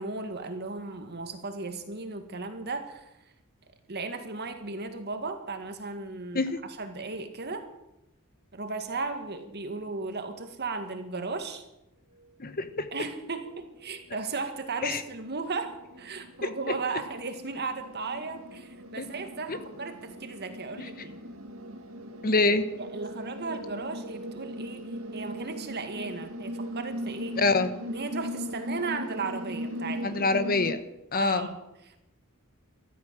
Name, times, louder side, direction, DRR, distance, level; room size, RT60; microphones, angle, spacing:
voice 1, 0.0-3.1 3.9-6.5 6.8-7.7 8.5-11.6 12.9-21.2 22.8-27.3 27.9-30.2 31.2-32.0, right 4 dB, 50° right, 7 dB, 2.1 m, -36 dB
sound 1, 12.2-12.3 12.6-30.8, equal, 70° right, 1.9 m, -39 dB
voice 2, 12.4-12.9 14.8-15.0 19.0-19.1 19.5-19.6 22.2-22.7 27.4-27.7 30.0-30.8 31.1-31.5, left 3 dB, 45° left, 11 dB, 1.1 m, -25 dB
13.5 x 13.5 x 7.6 m, 0.89 s
head